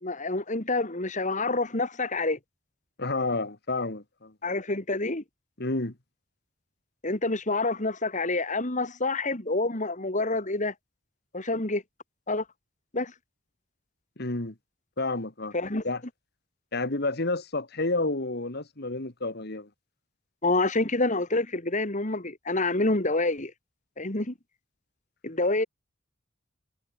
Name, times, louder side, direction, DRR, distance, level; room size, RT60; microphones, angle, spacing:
voice 1, 0.0-2.4 4.4-5.2 7.0-10.7 11.3-11.8 12.3-12.4 12.9-13.1 15.5-15.8 20.4-23.5 24.0-24.3 25.2-25.7, left 2 dB, 40° left, 2.7 m, -27 dB
voice 2, 3.0-4.3 5.6-5.9 14.2-14.5 15.0-15.5 15.8-16.0 16.7-19.7, left 2 dB, 55° left, 2.3 m, -30 dB
head